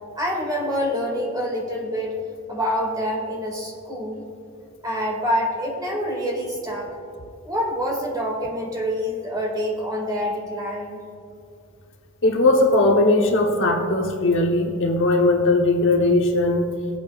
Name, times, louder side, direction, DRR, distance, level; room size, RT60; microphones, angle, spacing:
voice 1, 0.2-2.2 2.5-4.2 4.8-6.9 7.4-11.0, equal, 20° right, -2 dB, 2.1 m, -26 dB
voice 2, 12.2-16.7, left 2 dB, 60° left, 2 dB, 1.1 m, -19 dB
19.5 x 8.3 x 2.4 m, 2.5 s
head